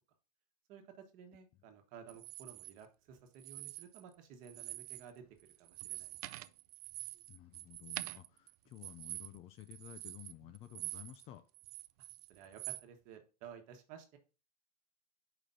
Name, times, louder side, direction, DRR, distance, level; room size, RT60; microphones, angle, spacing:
voice 1, 0.7-6.5 12.0-14.2, right 7 dB, 40° right, 5 dB, 1.2 m, -55 dB
sound 1, 2.1-2.7 3.3-4.1 4.4-5.1 5.4-11.2 11.5-12.8, right 17 dB, 65° right, 0.4 m, -46 dB
voice 2, 7.3-11.4, left 14 dB, 30° left, 11 dB, 0.4 m, -53 dB
5.0 x 3.9 x 5.5 m, 0.33 s
supercardioid pair, 155°, 21 cm